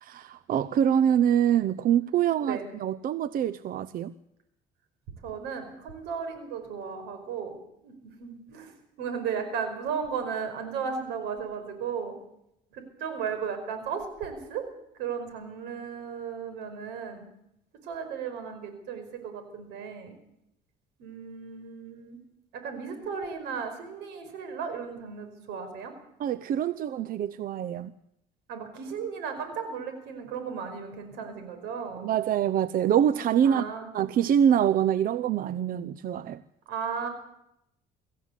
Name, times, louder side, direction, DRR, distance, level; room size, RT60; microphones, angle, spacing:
voice 1, 0.0-4.1 26.2-27.9 32.0-33.6 33.9-36.4, right 9 dB, 55° right, 16 dB, 0.7 m, -25 dB
voice 2, 5.2-7.6 7.8-12.2 12.7-14.7 15.0-17.2 17.8-20.2 21.0-22.2 22.5-25.9 28.5-32.1 33.4-33.9 36.7-37.1, right 6 dB, 90° right, 8 dB, 5.4 m, -35 dB
25.0 x 15.0 x 8.3 m, 0.81 s
cardioid pair, 110°, 17 cm